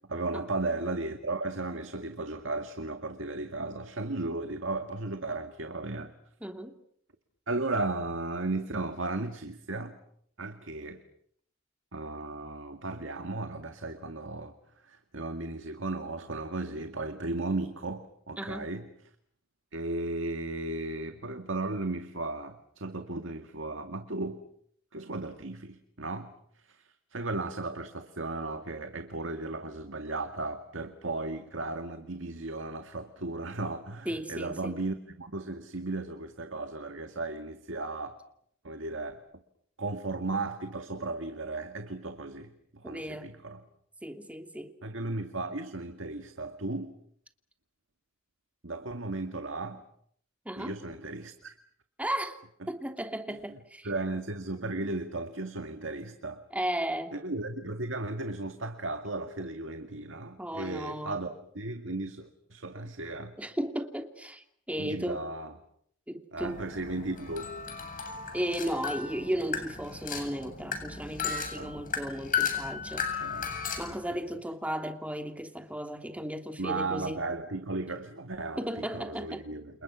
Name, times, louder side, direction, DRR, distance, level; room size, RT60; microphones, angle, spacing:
voice 1, 0.1-6.1 7.5-10.0 10.4-11.0 11.9-14.5 14.8-18.8 19.7-24.4 24.9-26.3 26.6-38.2 38.6-39.2 39.8-43.6 44.8-46.9 48.6-49.8 50.6-51.5 52.6-52.7 53.3-56.4 57.1-63.4 64.8-65.5 66.3-67.5 71.6-71.7 73.2-73.6 74.1-74.2 76.6-78.7 78.9-79.8, right 2 dB, 70° right, 7 dB, 2.0 m, -35 dB
voice 2, 6.4-6.8 18.4-18.7 34.0-34.8 42.8-43.3 44.0-44.7 50.4-50.7 52.0-52.4 52.7-53.9 56.5-57.2 60.4-61.1 63.4-65.2 66.1-66.6 68.3-73.2 73.8-77.2 78.6-79.4, right 1 dB, 5° right, 5 dB, 2.9 m, -35 dB
sound 1, 66.4-73.9, left 6 dB, 45° left, 7.8 m, -35 dB
29.5 x 29.0 x 6.3 m, 0.67 s
head